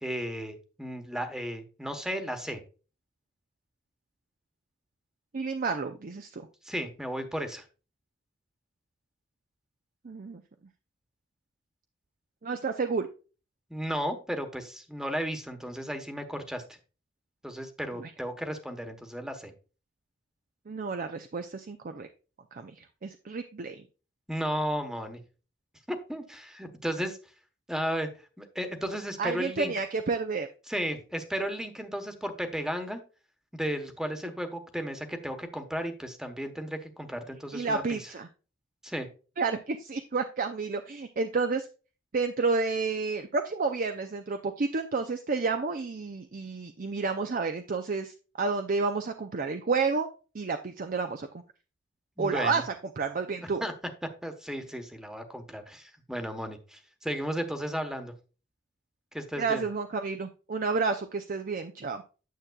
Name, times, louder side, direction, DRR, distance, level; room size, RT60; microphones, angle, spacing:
voice 1, 0.0-2.6 6.6-7.6 13.7-16.6 17.4-19.5 24.3-25.2 25.9-27.2 27.7-28.1 28.4-29.7 30.7-33.0 33.5-38.0 38.8-39.1 52.2-52.6 53.4-53.7 54.2-58.1 59.1-59.6, equal, 5° right, 7 dB, 1.1 m, -34 dB
voice 2, 5.3-6.4 10.0-10.4 12.4-13.1 18.0-18.1 20.7-22.1 22.5-23.8 29.2-30.5 37.5-38.3 39.4-41.7 42.1-50.1 50.3-51.4 52.2-53.6 59.4-62.0, right 4 dB, 45° right, 7 dB, 0.5 m, -30 dB
9.3 x 7.4 x 2.3 m, 0.34 s
head